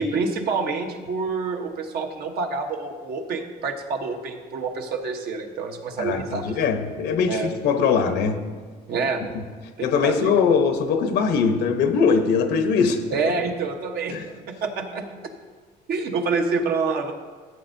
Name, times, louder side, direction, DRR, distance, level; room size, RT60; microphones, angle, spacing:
voice 1, 0.0-6.4 7.3-7.5 8.9-9.3 9.8-10.3 13.1-14.2 14.5-15.1 15.9-17.1, right 4 dB, 65° right, 3 dB, 1.1 m, -27 dB
voice 2, 6.0-8.4 9.8-13.0 14.1-14.3, left 5 dB, 80° left, 7 dB, 1.0 m, -21 dB
15.0 x 8.1 x 2.7 m, 1.5 s
cardioid pair, 110°, 17 cm